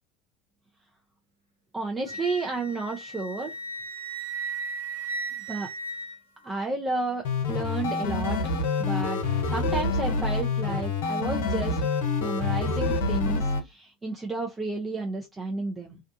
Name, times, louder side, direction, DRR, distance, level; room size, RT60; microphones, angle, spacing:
voice 1, 1.7-3.5 5.5-5.7 6.4-8.4 8.8-9.2 9.5-11.9 12.2-16.0, right 3 dB, 20° right, 0.6 m, -32 dB
Wind instrument woodwind instrument, 2.1-6.6, right 3 dB, 90° right, 1.0 m, -36 dB
sound 1, 7.2-13.6, left 3 dB, 70° left, 0.6 m, -27 dB
2.5 x 2.3 x 2.5 m
figure-of-eight pair, 70°, 0 cm